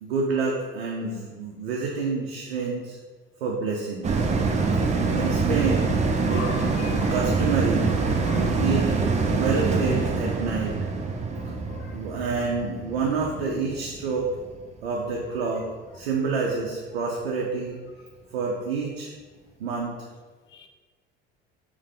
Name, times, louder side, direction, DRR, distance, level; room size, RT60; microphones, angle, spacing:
voice 1, 0.0-3.0 3.4-4.3 5.1-5.9 6.3-6.7 7.1-7.9 8.4-9.0 9.3-10.8 11.9-14.3 14.8-15.7 15.9-17.8 18.3-19.1 19.6-20.0, right 4 dB, 80° right, 0.5 m, -28 dB
sound 1, 4.0-14.7 15.2-15.3, right 4 dB, 25° right, 0.4 m, -25 dB
voice 2, 6.3-7.1 8.2-8.5 9.3-9.4 11.4-12.0 20.5-20.7, left 6 dB, 40° left, 0.5 m, -40 dB
4.4 x 2.1 x 3.7 m
figure-of-eight pair, 60°, 29 cm